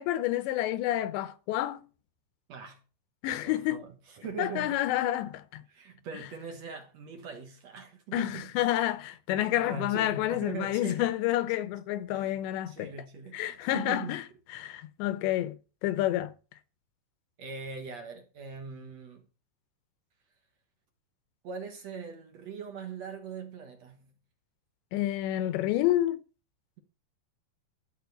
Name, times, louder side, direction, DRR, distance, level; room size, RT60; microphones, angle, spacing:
voice 1, 0.0-1.8 3.2-3.8 4.4-5.6 8.1-12.9 13.3-14.2 14.5-15.6 15.8-16.3 24.9-26.2, left 14 dB, 85° left, 3.2 m, -29 dB
voice 2, 2.5-2.8 3.4-4.8 5.7-8.5 9.4-11.1 12.1-14.2 17.4-19.2 21.4-24.1, right 5 dB, 60° right, 1.8 m, -41 dB
14.0 x 4.7 x 8.2 m
omnidirectional pair, 5.0 m